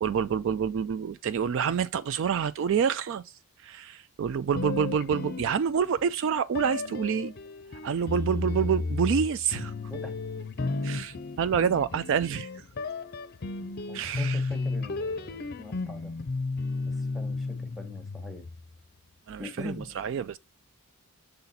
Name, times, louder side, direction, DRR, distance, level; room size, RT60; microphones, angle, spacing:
voice 1, 0.0-7.3 7.7-9.7 10.8-12.6 13.9-14.4 19.3-20.4, right 7 dB, 60° right, 0.3 m, -28 dB
sound 1, 4.5-6.0 6.5-18.8, left 3 dB, 45° left, 0.5 m, -33 dB
voice 2, 13.9-16.1 16.9-18.4 19.4-19.9, left 1 dB, ahead, 1.1 m, -42 dB
6.8 x 4.0 x 4.1 m
head